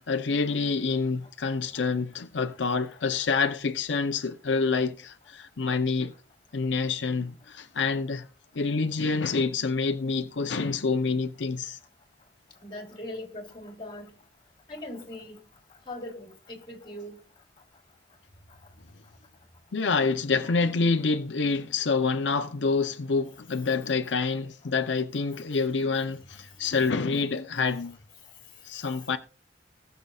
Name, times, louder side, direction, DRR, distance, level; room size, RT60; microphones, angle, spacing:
voice 1, 0.0-6.1 6.5-8.3 8.6-11.8 19.7-28.0 28.6-29.2, left 4 dB, 85° left, 0.7 m, -27 dB
voice 2, 12.6-14.2 14.7-15.4 15.8-17.2 20.4-20.5 25.7-26.0 26.3-26.9 27.7-27.8 28.7-29.1, left 1 dB, 30° left, 3.1 m, -41 dB
19.5 x 6.7 x 2.4 m
head